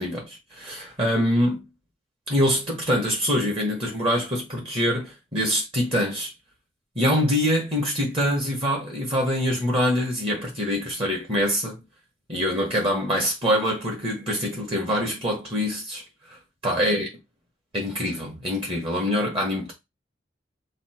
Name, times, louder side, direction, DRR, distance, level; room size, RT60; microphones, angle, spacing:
voice 1, 0.0-1.6 2.3-6.3 6.9-11.8 12.3-16.0 16.6-17.1 17.7-19.7, equal, 30° right, 1.5 m, -24 dB
5.7 x 2.0 x 4.4 m
head